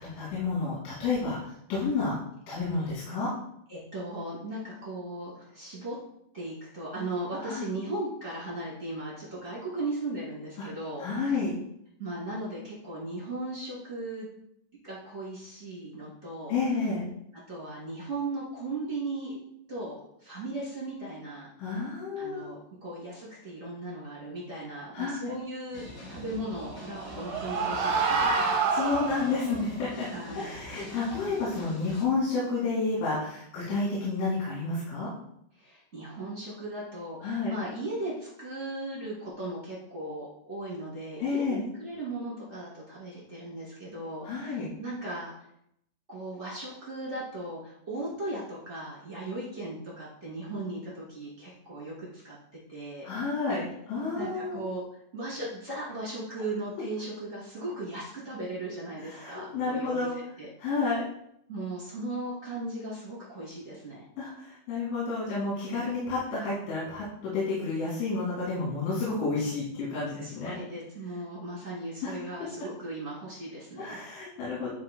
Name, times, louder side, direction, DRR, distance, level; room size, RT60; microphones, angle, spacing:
voice 1, 0.0-1.4 1.7-2.2 2.5-3.3 7.4-7.7 11.0-11.5 16.5-17.0 21.6-22.4 24.9-25.3 28.2-30.1 30.3-35.1 37.2-37.5 41.2-41.6 44.2-44.7 53.0-53.6 53.9-54.6 59.1-60.1 60.6-61.0 64.2-70.6 72.0-72.1 73.8-74.7, left 4 dB, 90° left, -8 dB, 4.6 m, -30 dB
voice 2, 3.7-5.9 6.3-11.1 12.0-14.3 14.8-16.6 17.5-19.4 19.7-19.9 20.2-21.5 22.1-28.3 30.0-30.6 35.5-41.4 41.8-45.3 46.1-52.4 52.7-53.1 54.1-54.8 55.1-60.1 60.4-60.5 61.5-64.0 70.2-74.0, right 2 dB, 25° right, -7 dB, 1.5 m, -37 dB
sound 1, 25.7-32.0, left 1 dB, 25° left, 1.8 m, -44 dB
sound 2, 26.6-29.6, right 4 dB, 85° right, 1.9 m, -28 dB
13.5 x 4.8 x 2.2 m, 0.74 s
omnidirectional pair, 5.5 m